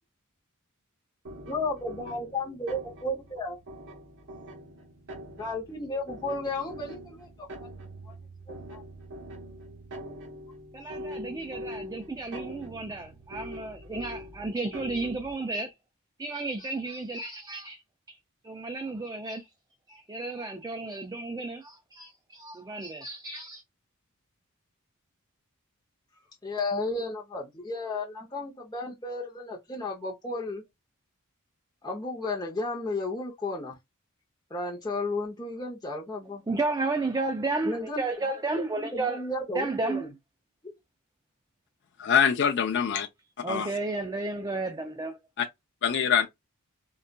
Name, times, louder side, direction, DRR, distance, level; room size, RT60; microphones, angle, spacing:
sound 1, 1.2-15.4, equal, 55° right, 0.9 m, -43 dB
voice 1, 1.5-3.6 5.4-7.5 8.1-8.2 8.5-8.8 26.4-30.6 31.8-33.8 34.5-36.4 37.6-38.0 38.5-40.1 40.6-40.7, left 2 dB, 20° left, 0.7 m, -33 dB
voice 2, 10.7-15.7 16.2-17.8 18.1-18.2 18.4-19.5 19.9-23.6 36.5-39.2 39.5-40.1 43.4-45.2, right 3 dB, 15° right, 0.3 m, -32 dB
voice 3, 42.0-43.1 43.5-43.7 45.4-45.5 45.8-46.3, left 7 dB, 55° left, 0.4 m, -24 dB
3.8 x 2.3 x 2.2 m
head